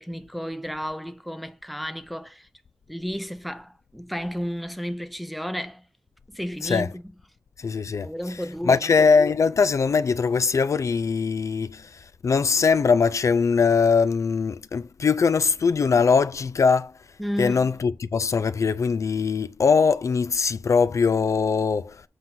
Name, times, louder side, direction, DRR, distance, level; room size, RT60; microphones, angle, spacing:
voice 1, 0.0-2.5 2.9-5.9 6.3-7.0 8.0-8.9 17.2-17.7, equal, ahead, 0.6 m, -32 dB
voice 2, 7.6-8.1 8.7-16.9 17.4-22.0, left 5 dB, 60° left, 0.3 m, -21 dB
7.7 x 2.6 x 5.7 m
wide cardioid pair, 75°, 6 cm